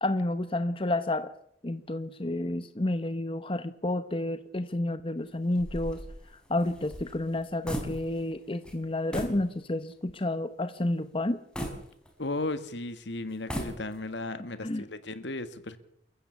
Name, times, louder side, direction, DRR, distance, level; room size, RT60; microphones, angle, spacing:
voice 1, 0.0-1.3 1.6-6.0 6.3-11.4 14.4-14.9, left 1 dB, 30° left, 11 dB, 0.9 m, -30 dB
sound 1, 5.5-8.4 8.6-8.8 9.1-9.4 9.9-10.0 11.5-12.5 13.3-14.2, equal, 5° left, 4.4 m, -37 dB
voice 2, 12.2-15.8, left 2 dB, 70° left, 11 dB, 1.9 m, -35 dB
28.5 x 15.0 x 7.2 m, 0.74 s
head